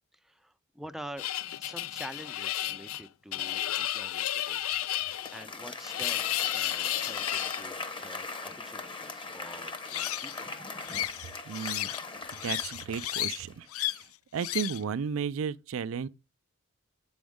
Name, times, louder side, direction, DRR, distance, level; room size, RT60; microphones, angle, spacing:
voice 1, 0.1-1.3 1.6-4.6 5.0-10.5, right 1 dB, ahead, 0.4 m, -47 dB
sound 1, 1.2-7.6 9.8-10.4 10.9-12.0 12.3-13.4 13.7-14.0 14.4-14.8, left 14 dB, 75° left, 0.4 m, -33 dB
Applause, 4.7-13.6, left 3 dB, 25° left, 0.9 m, -40 dB
voice 2, 11.5-11.9 12.3-14.0 14.3-16.1, right 6 dB, 70° right, 0.4 m, -34 dB
7.9 x 6.3 x 3.5 m
head